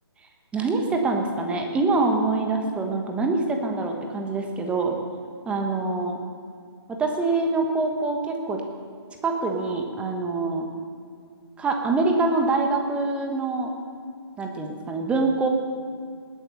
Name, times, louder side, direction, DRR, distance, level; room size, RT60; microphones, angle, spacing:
voice 1, 0.5-5.0 5.4-6.2 6.9-8.6 9.2-10.7 11.6-13.7 14.4-15.5, right 3 dB, 10° right, 3 dB, 1.3 m, -25 dB
19.5 x 9.0 x 6.8 m, 2.1 s
figure-of-eight pair, 145°, 14 cm